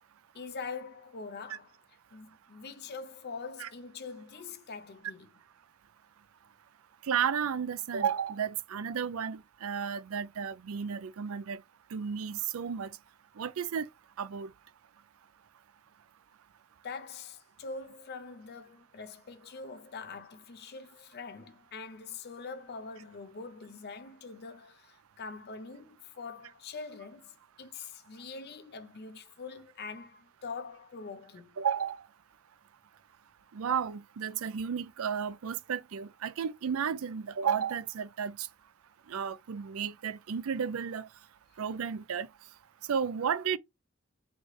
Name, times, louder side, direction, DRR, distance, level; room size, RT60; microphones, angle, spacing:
voice 1, 0.3-1.8 2.1-5.3 16.8-31.6, left 4 dB, 50° left, 0.6 m, -44 dB
voice 2, 7.0-11.6 11.9-12.9 13.4-13.9 14.2-14.5 31.6-32.0 33.5-38.5 39.1-41.1 41.6-42.3 42.9-43.6, right 7 dB, 75° right, 0.4 m, -33 dB
4.1 x 3.2 x 3.1 m
head